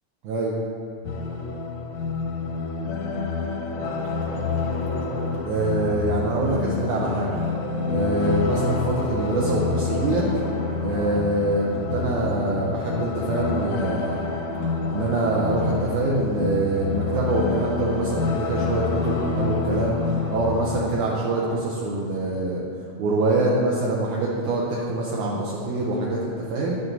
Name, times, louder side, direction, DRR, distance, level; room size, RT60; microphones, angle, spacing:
voice 1, 0.2-0.5 5.5-7.3 7.8-10.2 10.8-14.2 14.9-20.0 20.3-22.6 23.0-26.8, right 2 dB, 75° right, -4 dB, 2.0 m, -24 dB
sound 1, 1.0-20.8, left 4 dB, 75° left, 1.8 m, -28 dB
sound 2, 3.7-5.9 7.0-8.8 9.6-11.3 11.5-11.6 13.1-15.7 16.7-16.8 17.0-20.3, left 1 dB, 55° left, 0.5 m, -39 dB
10.5 x 5.8 x 2.6 m, 2.6 s
omnidirectional pair, 3.8 m